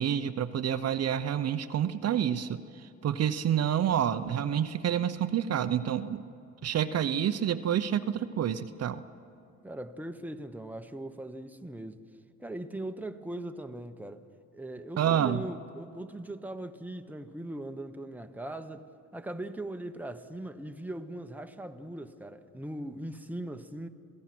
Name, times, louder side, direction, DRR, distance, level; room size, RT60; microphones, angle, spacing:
voice 1, 0.0-6.2 6.6-9.0 15.0-15.4, right 9 dB, 55° right, 0.7 m, -28 dB
voice 2, 9.6-12.0 12.4-14.2 14.5-18.9 19.1-23.9, right 1 dB, 5° right, 1.1 m, -40 dB
27.0 x 17.0 x 6.1 m
cardioid pair, 90°, 30 cm